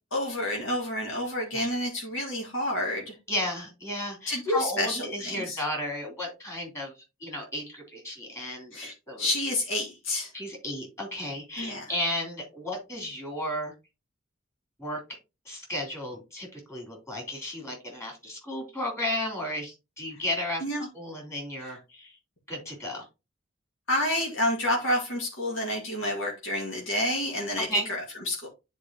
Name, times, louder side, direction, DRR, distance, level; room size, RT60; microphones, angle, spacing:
voice 1, 0.1-3.2 4.3-5.6 8.7-10.3 11.6-11.9 20.6-20.9 23.9-28.5, left 1 dB, 70° left, -2 dB, 2.1 m, -29 dB
voice 2, 3.3-9.3 10.3-13.7 14.8-15.0 15.4-20.6 20.9-22.2 22.5-23.0 27.7-27.9, left 1 dB, 15° left, 0 dB, 3.3 m, -34 dB
9.9 x 4.6 x 2.9 m, 0.26 s
head